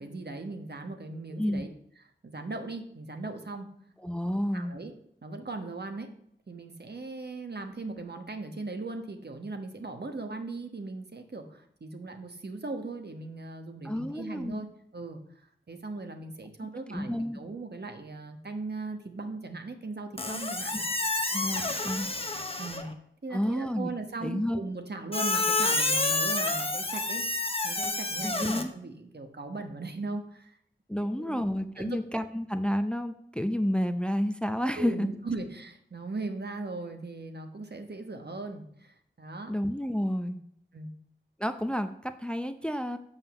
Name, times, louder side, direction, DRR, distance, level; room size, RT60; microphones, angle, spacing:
voice 1, 0.0-1.7 2.2-3.7 4.5-4.9 5.2-6.1 6.5-14.7 14.9-15.2 15.7-20.9 21.5-21.6 22.6-22.9 23.2-30.6 31.0-31.5 31.8-32.0 34.7-39.5 40.7-40.9, right 3 dB, 55° right, 5 dB, 1.2 m, -38 dB
voice 2, 4.0-4.7 13.8-14.6 16.9-17.4 21.3-22.1 23.3-23.9 24.2-24.6 28.2-28.7 30.9-35.1 39.5-40.4 41.4-43.0, equal, 5° left, 9 dB, 0.5 m, -30 dB
Squeak, 20.2-22.9 25.1-28.6, left 2 dB, 30° left, 1.0 m, -29 dB
7.3 x 5.6 x 6.9 m, 0.70 s
wide cardioid pair, 55°, 20 cm